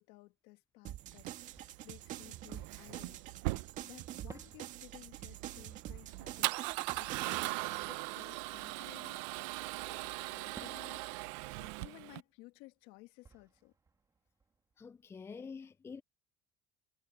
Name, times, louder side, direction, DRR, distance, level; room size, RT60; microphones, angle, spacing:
voice 1, 0.0-3.2 3.8-6.6 7.0-13.7, left 22 dB, 75° left, 2.5 m, -57 dB
sound 1, 0.8-7.5, right 13 dB, 55° right, 2.4 m, -46 dB
Male speech man speaking / Car / Engine starting, 1.1-12.2, right 22 dB, 80° right, 0.7 m, -40 dB
Fireworks, 1.5-3.5 4.3-9.6 10.6-15.3, right 5 dB, 20° right, 2.8 m, -61 dB
voice 2, 14.8-16.0, left 5 dB, 15° left, 0.5 m, -47 dB
supercardioid pair, 120°, 15 cm